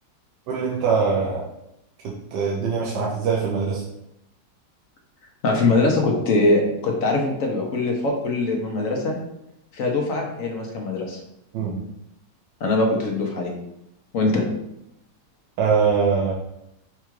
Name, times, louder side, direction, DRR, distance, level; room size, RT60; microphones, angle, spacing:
voice 1, 0.5-1.5 2.0-3.8 11.5-11.8 15.6-16.3, right 5 dB, 85° right, -3 dB, 1.3 m, -22 dB
voice 2, 5.4-9.2 9.7-11.2 12.6-13.5 14.1-14.4, left 2 dB, 60° left, 1 dB, 1.0 m, -22 dB
4.6 x 2.4 x 4.5 m, 0.82 s
omnidirectional pair, 1.8 m